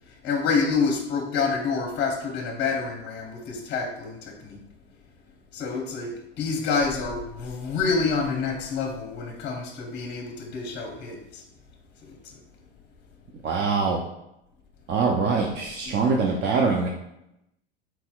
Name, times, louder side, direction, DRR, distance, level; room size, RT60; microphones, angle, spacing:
voice 1, 0.0-4.6 5.5-11.4 12.0-12.4 15.8-15.9, left 4 dB, 30° left, 1 dB, 0.9 m, -28 dB
voice 2, 13.4-14.0 14.9-16.9, right 4 dB, 30° right, 0 dB, 0.5 m, -23 dB
4.3 x 4.1 x 2.3 m, 0.85 s
hypercardioid pair, 95°, 33 cm